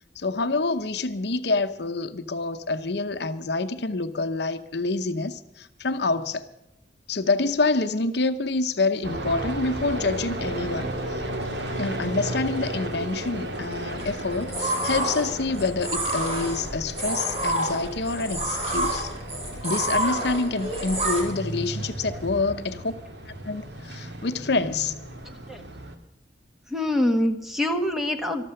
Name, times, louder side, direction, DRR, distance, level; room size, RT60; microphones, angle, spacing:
voice 1, 0.2-6.5 7.1-10.9 11.8-19.1 19.6-22.9 23.4-24.9, left 3 dB, 65° left, 10 dB, 0.8 m, -27 dB
sound 1, 9.0-25.9, right 1 dB, 70° right, 2.1 m, -34 dB
sound 2, 14.0-21.2, right 1 dB, 35° right, 4.4 m, -28 dB
voice 2, 25.2-25.6 26.7-28.5, left 1 dB, ahead, 5 dB, 1.4 m, -25 dB
13.5 x 13.0 x 6.6 m, 0.88 s
head